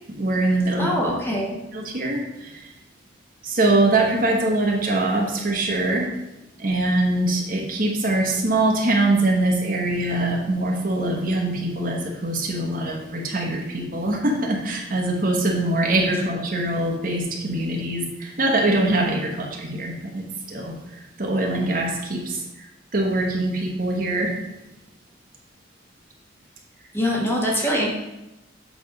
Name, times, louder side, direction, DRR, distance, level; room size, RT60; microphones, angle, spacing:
voice 1, 0.2-0.9 1.7-2.7 3.4-6.1 6.6-20.7 21.2-22.4 22.9-24.3, right 2 dB, 50° right, 1 dB, 1.2 m, -23 dB
voice 2, 0.8-1.6 26.9-27.9, equal, 15° left, -3 dB, 1.3 m, -23 dB
8.2 x 3.5 x 5.2 m, 0.96 s
head